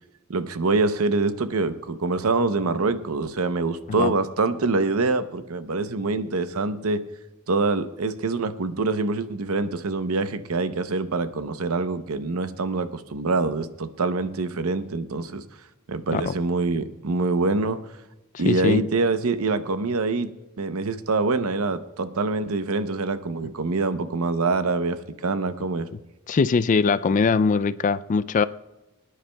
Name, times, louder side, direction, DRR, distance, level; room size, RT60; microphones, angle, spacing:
voice 1, 0.3-7.0 7.5-15.4 15.9-17.8 18.4-20.3 20.6-25.9, right 3 dB, 75° right, 0.7 m, -25 dB
voice 2, 18.5-18.8 26.3-28.4, left 5 dB, 35° left, 0.3 m, -21 dB
26.0 x 9.9 x 2.2 m
head